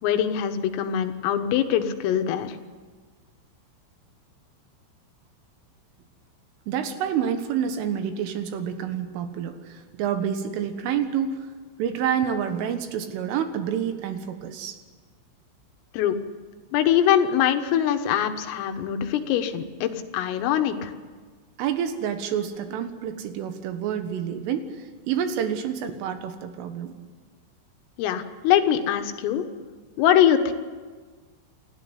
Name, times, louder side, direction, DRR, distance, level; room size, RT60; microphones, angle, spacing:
voice 1, 0.0-2.6 15.9-16.2 16.7-20.9 28.0-29.5 30.0-30.5, left 10 dB, 80° left, 7 dB, 3.9 m, -23 dB
voice 2, 6.7-11.5 11.8-14.8 21.6-26.9, right 8 dB, 75° right, 8 dB, 3.9 m, -28 dB
29.0 x 13.0 x 9.9 m, 1.5 s
omnidirectional pair, 6.0 m